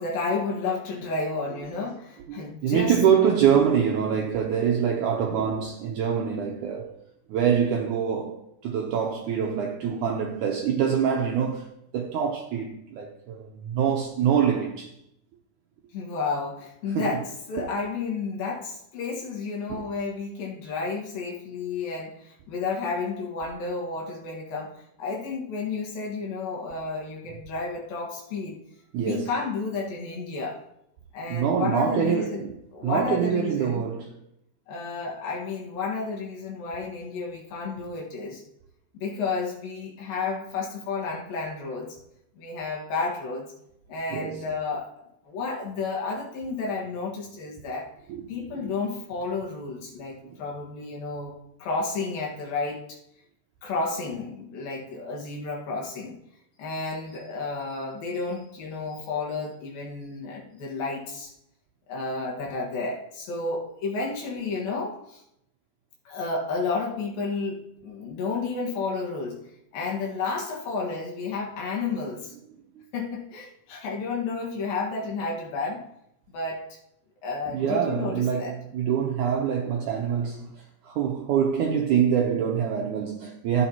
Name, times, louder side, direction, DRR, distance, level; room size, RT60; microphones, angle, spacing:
voice 1, 0.0-3.0 15.9-17.2 17.5-24.7 25.0-28.6 29.0-30.6 31.1-33.9 34.7-38.4 38.9-42.0 42.4-43.5 43.9-44.9 45.2-47.9 48.3-52.8 53.6-56.2 56.6-61.3 61.9-65.2 66.1-69.4 69.7-72.3 72.9-75.8 76.3-76.6 77.2-78.6, left 4 dB, 70° left, 3.2 m, -31 dB
voice 2, 2.3-7.0 7.3-11.7 11.9-14.9 17.0-17.2 17.6-17.7 19.7-19.8 28.9-29.3 31.3-32.5 32.8-34.1 44.1-44.5 48.1-48.2 48.6-48.7 50.2-50.3 77.5-80.5 80.8-83.7, right 8 dB, 80° right, 1.8 m, -25 dB
13.5 x 8.3 x 2.9 m
omnidirectional pair, 4.4 m